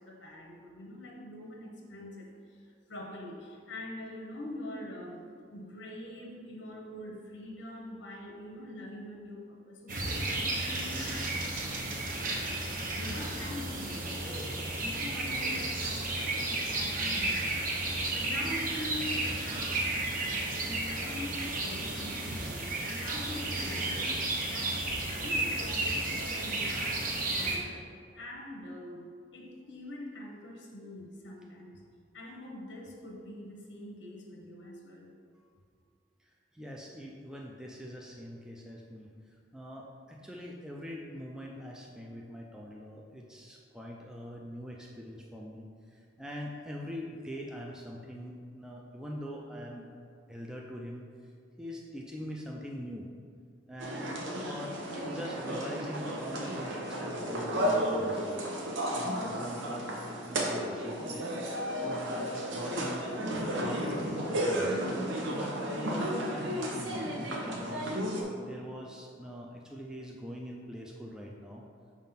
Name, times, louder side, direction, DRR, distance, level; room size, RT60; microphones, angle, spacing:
voice 1, 0.0-5.2 5.5-14.4 14.8-17.7 18.1-24.1 24.4-27.9 28.1-31.8 32.1-35.1, left 1 dB, 85° left, -1 dB, 1.0 m, -44 dB
sound 1, 9.9-27.6, right 2 dB, 45° right, 0.9 m, -33 dB
voice 2, 36.2-49.9 50.3-51.3 51.6-53.1 53.7-58.4 59.0-60.0 60.2-61.3 61.8-63.1 63.6-64.8 65.3-67.9 68.4-71.7, equal, 5° right, -1 dB, 0.4 m, -43 dB
sound 2, 53.8-68.2, equal, 90° right, 0.9 m, -33 dB
5.2 x 3.6 x 5.7 m, 2.2 s
head